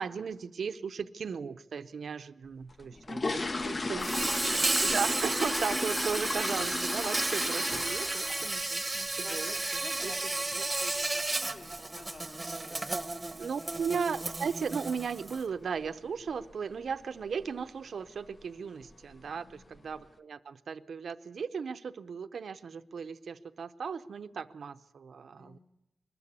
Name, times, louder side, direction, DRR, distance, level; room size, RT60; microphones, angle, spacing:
voice 1, 0.0-4.1 4.4-9.5 10.0-10.1 10.6-10.7 13.3-25.6, right 6 dB, 65° right, 11 dB, 0.7 m, -36 dB
sound 1, 2.7-8.6 8.9-9.2 9.5-9.6 10.0-10.1 10.5-10.7 11.0-11.1 11.7-11.8 12.0-12.2 12.7-13.0 13.3-13.4 13.8-14.0 14.3-14.4 14.8-14.9 15.6-15.9 16.2-16.5 16.9-17.0 17.4-17.5 18.3-18.4 18.8-19.3 19.8-19.9, left 3 dB, 30° left, 0.7 m, -35 dB
voice 2, 2.9-4.6 8.2-8.6 9.2-13.0 19.2-19.7 25.4-25.6, left 2 dB, 45° left, 2 dB, 3.3 m, -51 dB
Insect, 4.0-15.4, right 2 dB, 20° right, 1.0 m, -33 dB
22.0 x 14.0 x 9.6 m, 0.88 s
wide cardioid pair, 140°, 0 cm